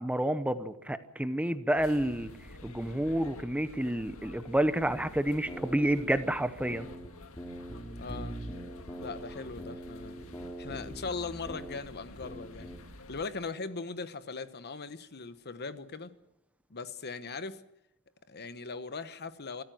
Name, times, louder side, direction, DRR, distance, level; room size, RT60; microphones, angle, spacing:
voice 1, 0.0-2.3 2.6-6.9, right 1 dB, 5° right, 0.8 m, -29 dB
sound 1, 1.7-13.2, left 2 dB, 70° left, 2.0 m, -50 dB
sound 2, 4.9-7.1 7.4-11.8 12.2-12.8, right 1 dB, 15° left, 2.7 m, -43 dB
voice 2, 8.0-8.3 9.0-10.2 10.6-12.7 13.1-16.1 16.7-17.6 18.3-19.6, left 4 dB, 50° left, 1.1 m, -39 dB
26.0 x 14.0 x 7.7 m
head